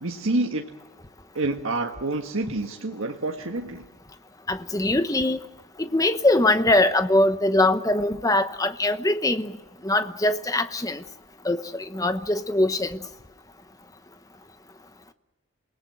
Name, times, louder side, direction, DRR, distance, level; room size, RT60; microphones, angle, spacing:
voice 1, 0.0-0.7 1.3-3.8, right 2 dB, 70° right, 2 dB, 1.5 m, -28 dB
voice 2, 4.5-5.4 5.8-9.5 9.8-11.0 11.4-13.0, left 2 dB, 15° left, 10 dB, 1.0 m, -22 dB
28.0 x 18.5 x 7.7 m, 1.1 s
head